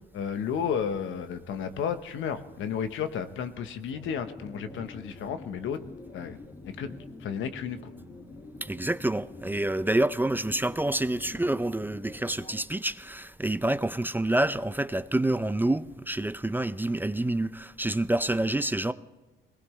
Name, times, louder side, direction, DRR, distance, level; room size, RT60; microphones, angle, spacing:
voice 1, 0.1-5.8 6.1-6.4 6.6-7.8, left 7 dB, 80° left, 1.1 m, -32 dB
sound 1, 3.9-12.6, left 2 dB, 30° left, 2.0 m, -46 dB
voice 2, 8.6-18.9, right 1 dB, 10° right, 0.4 m, -27 dB
21.5 x 18.5 x 3.2 m
cardioid pair, 90°, 20 cm